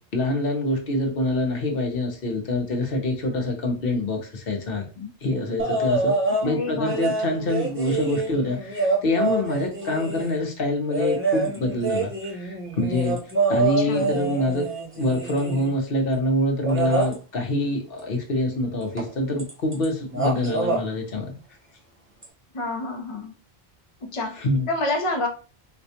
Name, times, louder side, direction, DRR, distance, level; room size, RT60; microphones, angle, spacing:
voice 1, 0.1-13.2 13.5-14.7 15.0-21.3 24.3-24.7, left 2 dB, 65° left, 3 dB, 1.0 m, -25 dB
sound 1, 5.6-6.5 6.9-10.4 10.9-15.8 16.6-17.1 19.0-19.1 19.4-19.9 20.1-20.8 22.2-22.3, right 3 dB, 15° right, 0.7 m, -26 dB
voice 2, 6.4-7.1 13.8-14.2 22.5-23.3 24.0-24.4 24.7-25.3, left 2 dB, 35° left, 2 dB, 0.7 m, -28 dB
4.2 x 2.3 x 2.7 m, 0.35 s
omnidirectional pair, 1.1 m